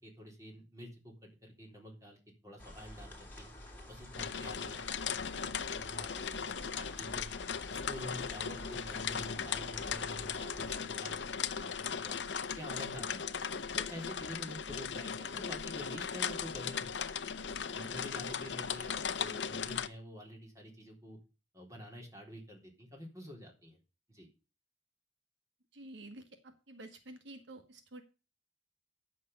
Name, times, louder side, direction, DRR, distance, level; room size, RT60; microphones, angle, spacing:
voice 1, 0.0-1.1 1.4-3.5 3.9-7.3 7.7-12.2 12.6-13.4 13.8-17.1 17.7-21.2 21.5-23.8 24.1-24.3, equal, 20° right, 0 dB, 3.8 m, -48 dB
sound 1, 2.6-10.8, left 1 dB, 10° left, 3.0 m, -50 dB
sound 2, 4.1-19.9, left 7 dB, 70° left, 0.7 m, -38 dB
voice 2, 25.7-28.0, right 1 dB, 70° right, 7 dB, 1.4 m, -50 dB
9.7 x 6.6 x 6.6 m, 0.32 s
head